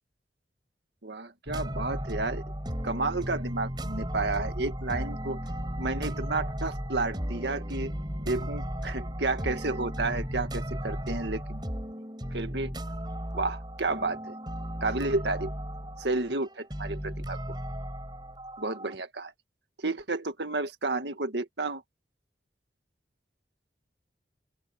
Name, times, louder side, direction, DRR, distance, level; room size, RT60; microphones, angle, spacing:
voice 1, 1.0-2.4 2.8-5.4 5.8-11.6 12.3-12.8 13.3-14.4 14.8-15.5 16.0-17.4 18.6-19.3 19.8-21.8, right 3 dB, 85° right, 1.8 m, -31 dB
sound 1, 1.5-18.9, equal, 25° right, 6.1 m, -35 dB
open air
head